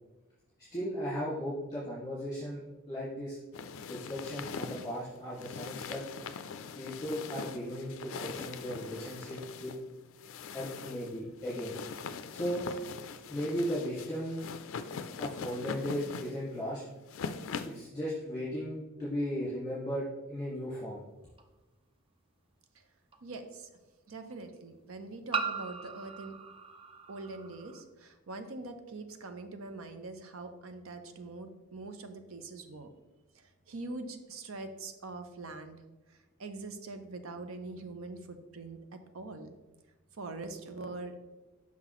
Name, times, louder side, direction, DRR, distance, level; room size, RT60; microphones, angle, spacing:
voice 1, 0.7-3.4 3.9-6.0 6.7-9.7 10.5-11.8 12.3-12.6 13.3-14.5 15.2-16.9 17.6-21.0, equal, 15° left, -10 dB, 1.7 m, -36 dB
sound 1, 3.5-17.9, left 5 dB, 65° left, 0.4 m, -42 dB
sound 2, 21.4-21.5 23.1-23.2 25.3-27.8, right 5 dB, 25° right, 0.4 m, -38 dB
voice 2, 23.2-23.7 24.1-26.4 27.1-32.9 33.3-35.8 36.1-39.5 40.2-41.3, right 3 dB, 65° right, 8 dB, 0.6 m, -43 dB
5.9 x 5.8 x 3.0 m, 1.1 s
head